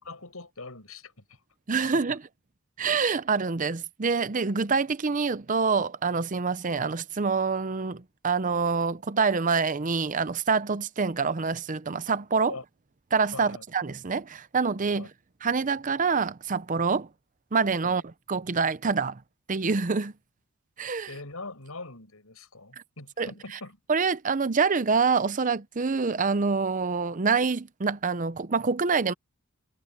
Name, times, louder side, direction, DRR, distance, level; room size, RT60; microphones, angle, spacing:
voice 1, 0.0-1.4 1.9-2.0 12.5-12.6 13.3-13.6 15.0-15.1 17.8-18.0 21.1-23.8, left 3 dB, 80° left, 6.2 m, -42 dB
voice 2, 1.7-2.2 2.8-12.6 13.1-15.1 15.4-17.1 17.5-19.2 19.5-20.1 20.8-21.1 22.7-22.8 23.2-23.3 23.9-29.1, right 5 dB, 35° right, 0.6 m, -26 dB
head